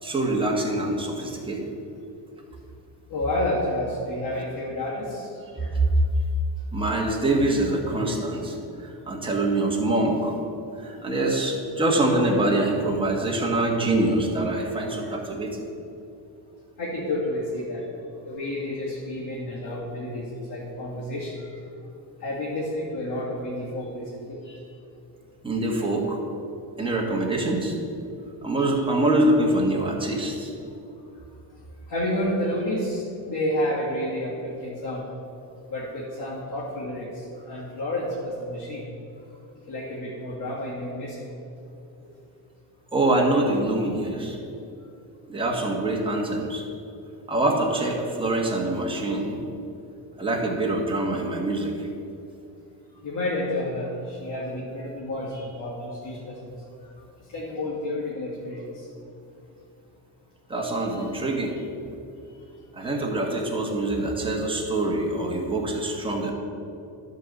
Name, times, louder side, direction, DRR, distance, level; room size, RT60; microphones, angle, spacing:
voice 1, 0.0-1.7 5.5-5.9 6.7-8.5 8.8-15.6 25.4-26.2 26.8-27.8 28.4-30.5 42.9-44.4 45.3-46.6 47.3-49.4 50.2-51.9 60.5-61.5 62.7-66.3, right 2 dB, 10° right, -1 dB, 1.4 m, -25 dB
voice 2, 3.1-5.3 5.6-5.7 16.8-17.8 18.3-20.2 20.5-21.5 22.2-24.6 28.6-28.8 31.9-35.0 35.7-38.9 39.7-41.2 53.0-56.5 57.3-58.7 60.9-61.1 62.8-62.9, left 1 dB, 45° left, -8 dB, 2.3 m, -30 dB
11.0 x 4.1 x 7.1 m, 2.7 s
cardioid pair, 125°, 43 cm